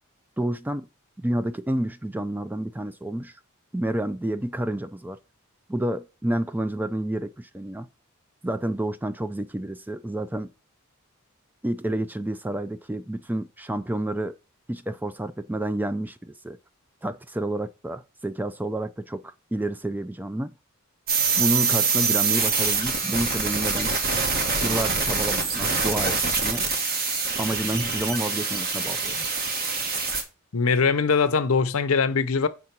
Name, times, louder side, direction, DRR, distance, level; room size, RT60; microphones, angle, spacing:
voice 1, 0.4-0.9 1.2-3.3 3.7-5.2 5.7-7.9 8.4-10.5 11.6-14.4 14.7-16.6 17.0-19.2 19.5-20.5 21.4-23.9 24.6-26.6 27.4-29.2, right 1 dB, 10° right, 0.3 m, -29 dB
sound 1, 21.1-30.2, right 4 dB, 45° right, 1.4 m, -25 dB
voice 2, 30.5-32.5, left 5 dB, 75° left, 0.7 m, -21 dB
7.7 x 3.7 x 5.9 m
head